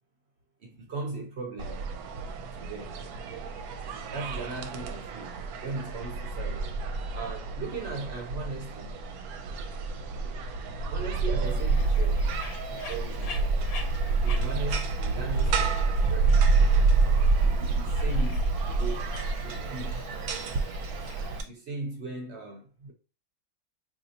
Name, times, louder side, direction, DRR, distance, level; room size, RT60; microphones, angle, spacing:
voice 1, 0.6-1.8 2.6-3.0 4.1-5.3 5.6-6.7 7.1-9.0 10.9-12.3 12.7-13.4 14.2-16.4 17.4-20.0 21.4-22.9, right 3 dB, 60° right, 0.8 m, -38 dB
sound 1, 1.6-21.4, right 3 dB, 75° right, 1.0 m, -28 dB
Bird, 11.5-21.5, left 4 dB, 75° left, 1.0 m, -46 dB
3.9 x 2.8 x 2.7 m
omnidirectional pair, 1.6 m